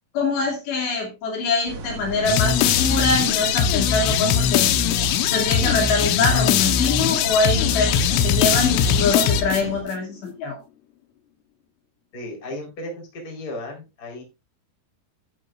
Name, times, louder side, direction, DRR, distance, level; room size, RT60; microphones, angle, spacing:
voice 1, 0.1-4.8 5.3-10.6, left 3 dB, 60° left, 1 dB, 4.4 m, -24 dB
sound 1, 1.7-9.8, right 4 dB, 65° right, 3.6 m, -35 dB
sound 2, 2.3-9.9, left 9 dB, 80° left, 3.5 m, -20 dB
voice 2, 12.1-14.2, left 1 dB, 20° left, 2 dB, 3.8 m, -35 dB
13.0 x 10.0 x 2.5 m, 0.25 s
omnidirectional pair, 5.9 m